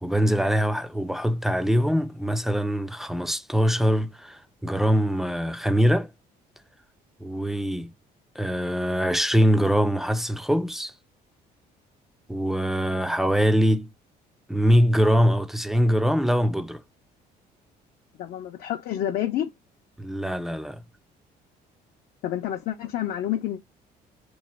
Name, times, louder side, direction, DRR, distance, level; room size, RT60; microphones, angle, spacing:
voice 1, 0.0-6.1 7.2-7.9 8.4-10.9 12.3-13.9 14.5-16.8 20.0-20.8, equal, ahead, 0.3 m, -23 dB
voice 2, 18.2-19.5 22.2-23.6, left 11 dB, 65° left, 0.5 m, -28 dB
3.1 x 2.3 x 4.3 m
cardioid pair, 110°, 17 cm